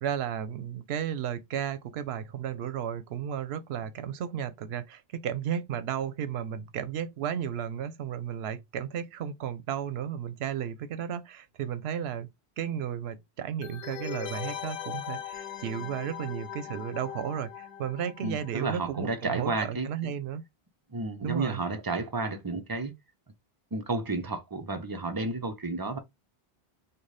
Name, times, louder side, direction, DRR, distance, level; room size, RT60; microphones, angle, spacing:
voice 1, 0.0-12.3 12.6-20.4 21.2-21.6, right 9 dB, 80° right, 0.8 m, -34 dB
sound 1, 13.6-19.1 19.3-19.4, left 9 dB, 70° left, 0.8 m, -40 dB
voice 2, 18.2-20.1 20.9-22.9 23.7-26.0, right 3 dB, 25° right, 0.5 m, -32 dB
3.9 x 2.2 x 3.2 m
omnidirectional pair, 1.1 m